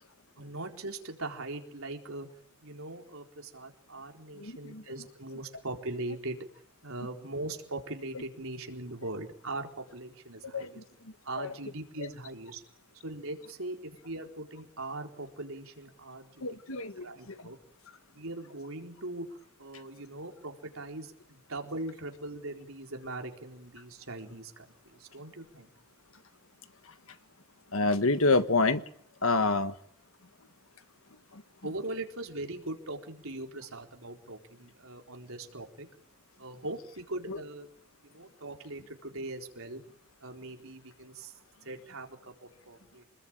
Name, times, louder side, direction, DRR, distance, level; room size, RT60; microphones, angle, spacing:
voice 1, 0.4-2.3 2.6-6.4 6.8-10.8 11.2-12.6 13.0-17.6 18.1-24.6 25.0-25.7 31.6-35.9 36.4-37.7 38.0-39.8 40.2-41.3 41.6-43.1, right 2 dB, 70° right, 4.2 m, -40 dB
voice 2, 4.4-4.8 10.5-11.5 16.4-17.5 27.7-28.8 29.2-29.7 31.3-31.4 37.3-37.4, left 3 dB, 70° left, 1.6 m, -28 dB
26.5 x 21.0 x 9.0 m
head